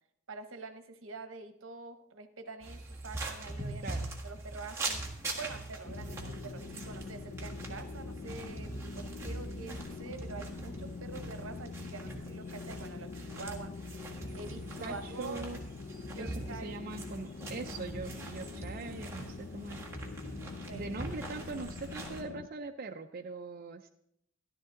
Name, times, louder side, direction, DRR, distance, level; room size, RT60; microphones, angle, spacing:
voice 1, 0.3-4.0 4.2-13.7 14.3-15.5 16.1-16.8 20.7-20.9, right 3 dB, 80° right, 9 dB, 0.9 m, -46 dB
sound 1, 2.6-22.2, right 2 dB, 15° right, 1.5 m, -42 dB
sound 2, 5.8-22.5, left 4 dB, 50° left, 0.4 m, -44 dB
voice 2, 14.8-15.6 16.2-16.3 16.6-19.8 20.7-23.9, right 3 dB, 45° right, 4 dB, 0.5 m, -42 dB
13.5 x 11.5 x 3.8 m, 0.75 s
head